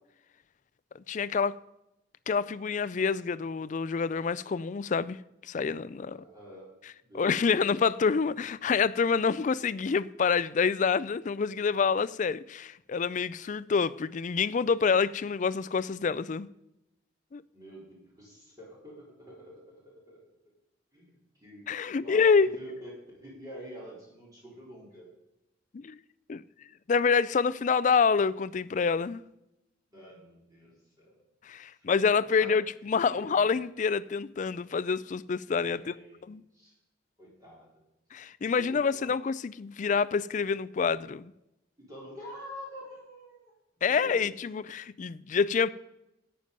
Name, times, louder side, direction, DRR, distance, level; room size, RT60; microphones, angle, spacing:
voice 1, 1.1-1.5 2.3-5.2 5.5-6.2 7.1-16.5 17.3-17.4 21.7-22.5 25.7-26.0 26.3-26.4 26.9-29.2 31.5-35.9 36.2-36.4 38.1-41.3 43.8-45.7, left 5 dB, 40° left, 0.4 m, -27 dB
voice 2, 6.2-6.7 7.0-7.7 17.5-20.2 20.9-25.1 29.9-31.2 31.7-31.9 32.4-32.5 33.0-33.5 35.8-36.2 36.5-36.7 37.2-37.7 38.4-39.1 41.8-43.5 43.8-44.3, equal, 20° right, 4.0 m, -47 dB
13.0 x 9.0 x 5.3 m
head